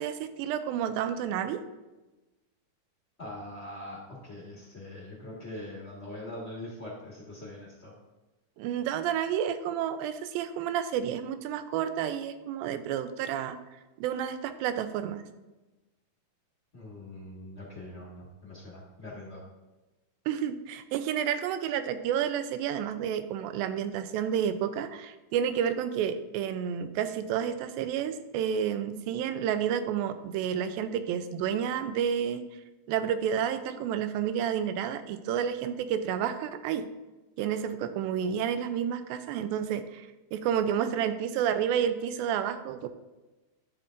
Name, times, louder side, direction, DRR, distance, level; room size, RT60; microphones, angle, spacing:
voice 1, 0.0-1.6 8.6-13.6 14.0-15.3 20.3-32.5 32.9-36.9 37.4-42.9, right 9 dB, 90° right, 11 dB, 2.4 m, -30 dB
voice 2, 3.2-7.9 16.7-19.4, left 1 dB, 55° left, -6 dB, 0.7 m, -42 dB
11.0 x 6.8 x 2.5 m, 1.1 s
omnidirectional pair, 4.0 m